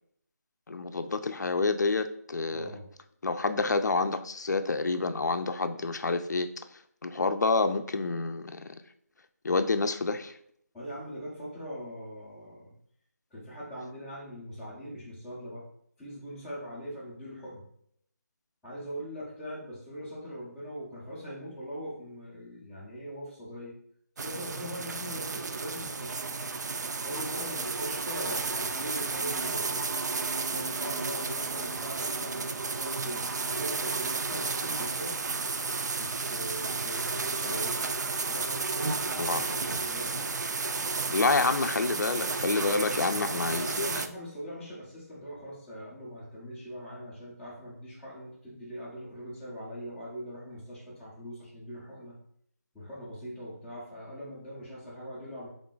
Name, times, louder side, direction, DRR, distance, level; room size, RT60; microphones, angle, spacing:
voice 1, 0.7-2.7 3.2-6.5 7.0-8.8 9.4-10.4 39.2-39.6 41.1-44.0, left 3 dB, 90° left, 9 dB, 0.4 m, -28 dB
voice 2, 2.5-2.9 10.7-12.7 13.3-15.6 16.0-17.6 18.6-23.7 24.2-26.2 27.0-29.9 30.5-35.2 36.0-38.0 38.2-40.3 43.2-52.1 52.7-55.5, equal, ahead, -12 dB, 0.3 m, -41 dB
sound 1, 24.2-44.1, right 4 dB, 80° right, 0.4 m, -32 dB
3.7 x 2.4 x 3.8 m, 0.67 s
figure-of-eight pair, 170°, 9 cm